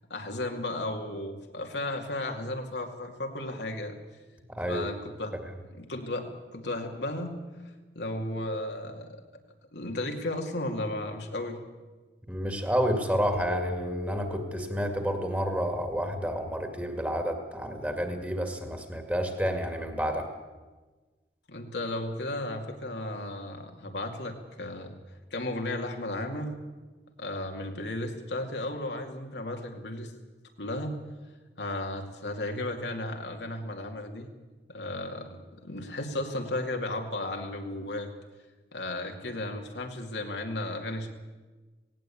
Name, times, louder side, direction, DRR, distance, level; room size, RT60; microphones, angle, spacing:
voice 1, 0.1-4.0 4.7-5.4 5.7-7.4 7.9-9.2 9.7-11.6 21.5-24.9 25.3-26.6 27.2-30.1 30.6-30.9 31.6-34.3 34.7-38.1 38.7-41.1, left 1 dB, 80° left, 3 dB, 2.4 m, -34 dB
voice 2, 4.5-4.9 12.3-20.3, equal, 10° right, 5 dB, 2.0 m, -30 dB
sound 1, 13.3-16.8, left 4 dB, 70° right, 6.5 m, -42 dB
18.0 x 17.5 x 8.6 m, 1.3 s
head